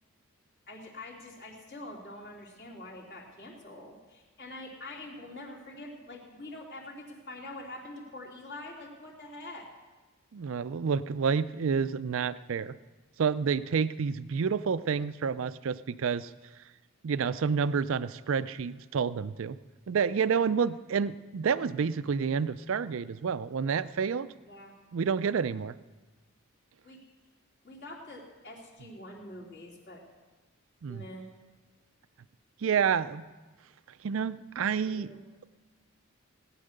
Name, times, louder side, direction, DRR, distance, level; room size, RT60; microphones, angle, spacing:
voice 1, 0.7-9.7 24.5-24.8 26.8-27.0 27.6-30.0 30.9-31.3 34.9-35.2, left 1 dB, 50° left, -3 dB, 3.2 m, -45 dB
voice 2, 10.3-12.8 13.2-16.3 17.0-19.6 19.9-24.3 24.9-25.7 30.8-31.0 32.6-33.2 34.0-35.1, right 6 dB, 60° right, 15 dB, 0.4 m, -29 dB
18.5 x 9.9 x 6.6 m, 1.3 s
head